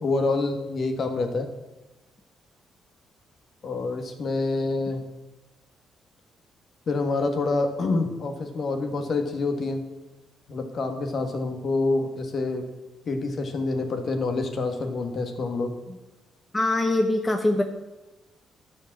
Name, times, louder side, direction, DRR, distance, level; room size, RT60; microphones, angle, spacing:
voice 1, 0.0-1.5 3.6-5.0 6.9-9.8 10.5-12.6 13.0-15.7, left 3 dB, 50° left, 5 dB, 1.7 m, -27 dB
voice 2, 16.5-17.6, left 2 dB, 15° left, 4 dB, 0.9 m, -22 dB
11.5 x 5.0 x 7.5 m, 1.1 s
cardioid pair, 90°, 0 cm